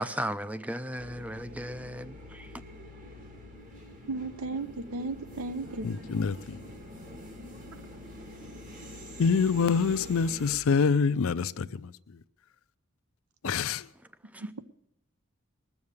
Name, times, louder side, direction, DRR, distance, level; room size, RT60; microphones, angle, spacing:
voice 1, 0.0-2.5 14.3-14.4, right 1 dB, 5° right, 0.4 m, -35 dB
sound 1, 1.0-10.6, left 1 dB, 35° right, 1.6 m, -46 dB
voice 2, 4.1-5.9 14.6-14.7, right 3 dB, 75° right, 0.7 m, -34 dB
voice 3, 5.8-6.6 9.2-11.9 13.4-13.8, left 5 dB, 70° left, 0.4 m, -26 dB
20.0 x 7.2 x 6.5 m
head